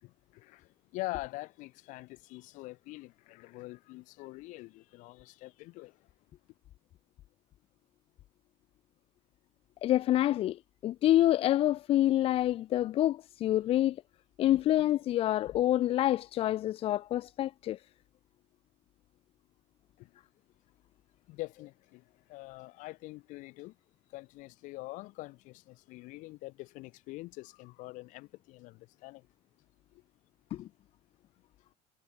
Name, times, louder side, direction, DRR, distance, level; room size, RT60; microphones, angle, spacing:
voice 1, 0.0-6.1 20.0-20.1 21.3-23.8 24.1-29.3 29.9-30.0, left 21 dB, 60° left, 5.3 m, -44 dB
voice 2, 9.8-14.0 14.4-17.8 30.5-30.7, left 13 dB, 40° left, 1.6 m, -27 dB
cardioid pair, 175°, 14 cm